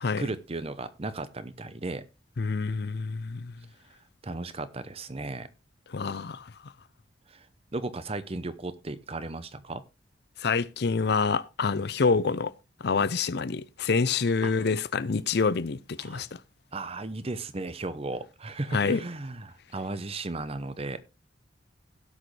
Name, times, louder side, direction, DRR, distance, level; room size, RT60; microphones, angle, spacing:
voice 1, 0.2-2.0 4.2-5.5 7.3-7.5 7.7-9.8 14.4-14.5 16.0-16.3 16.7-21.0, right 2 dB, 35° right, 0.8 m, -35 dB
voice 2, 2.4-3.5 5.9-6.5 10.4-12.5 12.8-16.3 18.7-19.0, left 4 dB, 60° left, 0.5 m, -27 dB
16.5 x 6.4 x 3.2 m
head